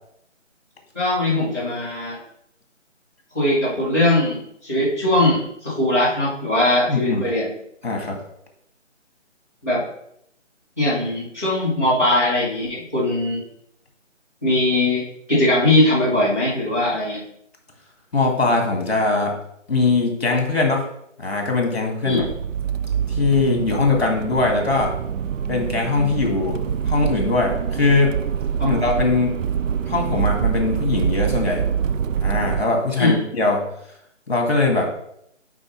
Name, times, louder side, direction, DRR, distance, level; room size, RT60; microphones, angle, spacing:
voice 1, 0.9-2.2 3.3-7.5 9.6-9.8 10.8-13.4 14.4-15.0 15.3-17.2 22.0-22.2 28.6-28.7 33.0-33.2, left 1 dB, 15° right, -12 dB, 1.7 m, -20 dB
voice 2, 6.9-7.3 7.8-8.2 18.1-19.4 19.7-20.9 21.2-22.3 23.1-24.9 25.5-26.6 26.8-28.2 28.6-29.4 29.9-31.6 32.2-33.7 34.3-34.9, left 3 dB, 55° left, 1 dB, 1.9 m, -21 dB
Accelerating revving vroom, 22.1-32.6, right 8 dB, 85° right, 0.5 m, -25 dB
9.6 x 4.5 x 3.1 m, 0.73 s
figure-of-eight pair, 180°, 37 cm